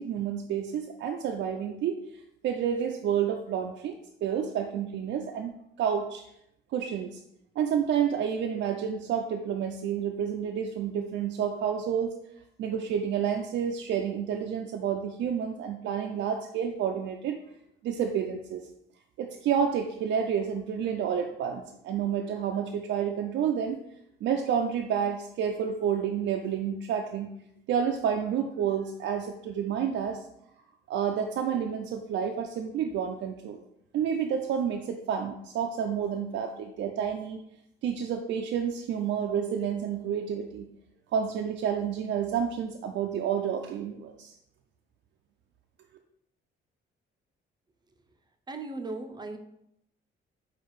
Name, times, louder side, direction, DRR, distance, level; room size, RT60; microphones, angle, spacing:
voice 1, 0.0-2.0 2.4-6.2 6.7-7.2 7.6-12.1 12.6-17.4 17.8-18.7 19.2-23.8 24.2-27.3 27.7-30.2 30.9-33.6 33.9-37.4 37.8-40.7 41.1-44.3, right 8 dB, 70° right, 3 dB, 0.4 m, -29 dB
voice 2, 48.5-49.4, right 2 dB, 20° right, 6 dB, 0.6 m, -37 dB
4.6 x 2.4 x 4.7 m, 0.77 s
cardioid pair, 90°, 20 cm